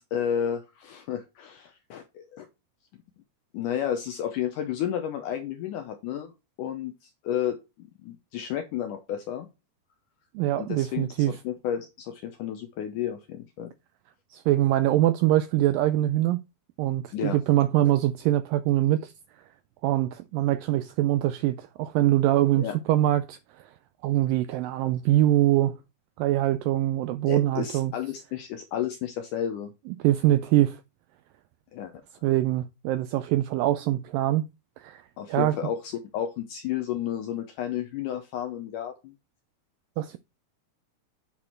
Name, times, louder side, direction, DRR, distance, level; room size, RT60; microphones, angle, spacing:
voice 1, 0.0-2.5 3.5-6.3 6.6-9.5 10.5-13.7 17.1-17.4 22.6-22.8 27.3-29.7 31.7-31.9 35.2-39.1, left 9 dB, 80° left, 1.9 m, -32 dB
voice 2, 10.4-11.3 14.3-16.4 16.8-19.1 19.8-23.4 24.0-25.8 26.2-27.9 30.0-30.8 32.2-34.4 34.8-35.0 35.3-35.6 40.0-40.2, right 14 dB, 85° right, 2.0 m, -23 dB
8.7 x 4.4 x 4.3 m
omnidirectional pair, 4.5 m